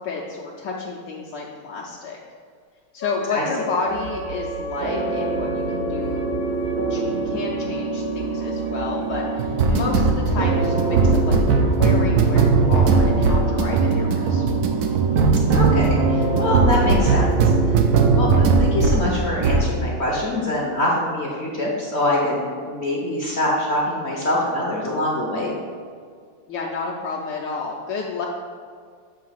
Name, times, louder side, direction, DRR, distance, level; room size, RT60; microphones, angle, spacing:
voice 1, 0.0-2.2 2.9-6.3 6.9-14.4 26.5-28.3, left 4 dB, 70° left, -3 dB, 1.3 m, -30 dB
Wind instrument woodwind instrument, 3.0-9.6, left 2 dB, 90° left, 1.5 m, -34 dB
sound 1, 3.9-17.3, right 3 dB, 85° right, 1.4 m, -35 dB
sound 2, 4.8-19.1 19.4-19.7, right 4 dB, 70° right, 0.9 m, -19 dB
voice 2, 15.5-17.4 18.1-25.5, left 1 dB, 50° left, -3 dB, 0.8 m, -24 dB
7.8 x 2.8 x 5.6 m, 2.1 s
omnidirectional pair, 2.1 m